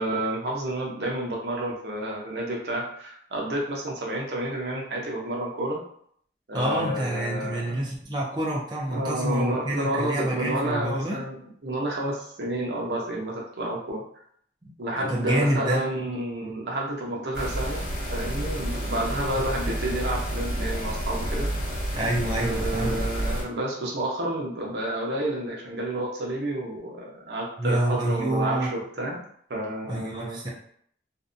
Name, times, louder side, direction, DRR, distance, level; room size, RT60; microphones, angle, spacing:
voice 1, 0.0-5.8 6.5-7.9 8.9-14.0 14.8-17.8 18.1-21.5 22.4-29.2 29.5-30.4, right 1 dB, 70° right, -2 dB, 0.6 m, -30 dB
voice 2, 6.5-11.2 14.6-15.8 21.9-23.0 27.6-28.7 29.9-30.5, right 1 dB, 25° right, -5 dB, 0.4 m, -27 dB
sound 1, 17.3-23.4, equal, 55° left, 1.2 m, -30 dB
2.6 x 2.1 x 2.5 m, 0.64 s
head